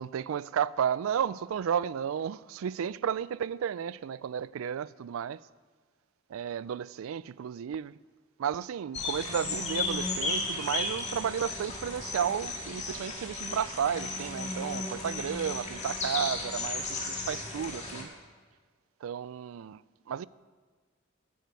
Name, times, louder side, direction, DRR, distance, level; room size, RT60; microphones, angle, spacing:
voice 1, 0.0-5.4 6.3-8.0 8.4-18.1 19.0-19.8 20.1-20.3, right 8 dB, 85° right, 0.3 m, -33 dB
sound 1, 8.9-18.0, left 3 dB, 35° left, 2.0 m, -34 dB
15.0 x 9.0 x 4.7 m
head